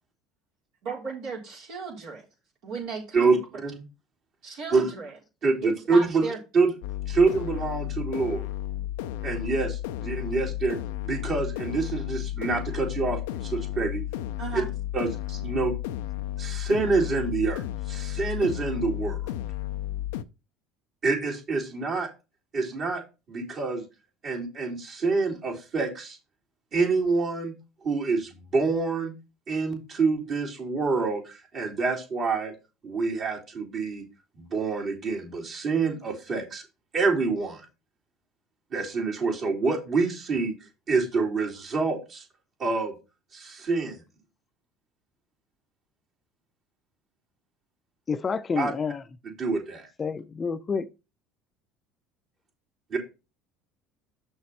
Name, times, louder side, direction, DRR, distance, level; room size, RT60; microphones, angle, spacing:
voice 1, 0.8-2.2 2.6-3.4 4.4-5.1 5.6-6.4 14.4-14.7 15.3-15.4, right 4 dB, 70° right, 4.0 m, -35 dB
voice 2, 3.1-3.9 4.7-4.9 5.4-6.3 6.5-6.7 7.1-8.4 9.2-14.0 14.5-14.6 14.9-15.1 15.4-15.7 16.4-17.6 17.9-19.3 21.0-22.1 22.5-23.0 23.3-23.8 24.2-26.2 26.7-27.5 27.8-29.1 29.5-32.5 32.8-34.0 34.3-36.6 36.9-37.7 38.7-40.5 40.9-42.2 42.6-42.9 43.3-44.0 48.6-48.7 49.2-49.9 52.9-53.0, right 4 dB, 50° right, 3.8 m, -26 dB
sound 1, 6.8-20.2, left 13 dB, 80° left, 0.5 m, -33 dB
voice 3, 48.1-49.1 50.0-50.9, left 5 dB, 30° left, 0.5 m, -29 dB
6.5 x 6.3 x 4.2 m
supercardioid pair, 85°, 0 cm